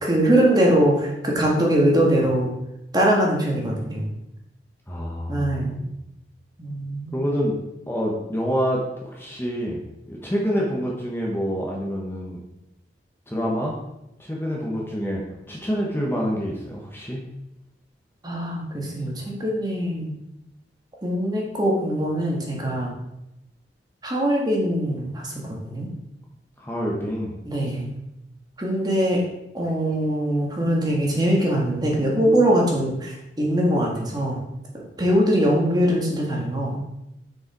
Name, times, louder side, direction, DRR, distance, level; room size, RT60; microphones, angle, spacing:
voice 1, 0.0-2.5 2.9-4.1 5.3-5.8 6.6-7.2 18.2-20.1 21.0-22.9 24.0-25.9 27.4-27.9 28.6-29.2 29.5-34.4 34.7-36.8, right 1 dB, 20° right, -2 dB, 1.6 m, -22 dB
voice 2, 4.9-6.0 7.1-7.5 7.9-9.8 10.1-12.4 13.3-13.8 14.2-15.2 15.5-17.2 26.6-27.3, equal, 10° left, -3 dB, 1.1 m, -27 dB
6.5 x 5.5 x 4.7 m, 0.89 s
head